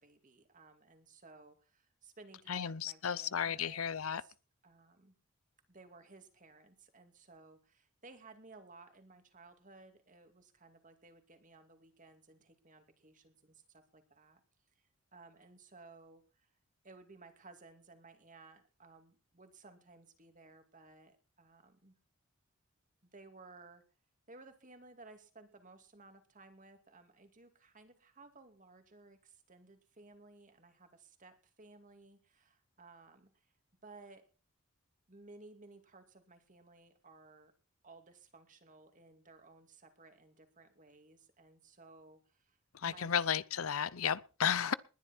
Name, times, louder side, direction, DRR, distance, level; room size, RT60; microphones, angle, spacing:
voice 1, 0.0-3.9 4.2-4.3 4.6-5.2 5.7-14.4 14.8-16.5 16.8-22.0 23.0-23.8 24.3-33.5 33.8-34.2 35.1-37.5 37.8-43.1, right 3 dB, 40° right, 2.6 m, -58 dB
voice 2, 2.5-4.2 42.8-44.7, left 8 dB, 80° left, 0.7 m, -33 dB
20.5 x 11.0 x 4.5 m
head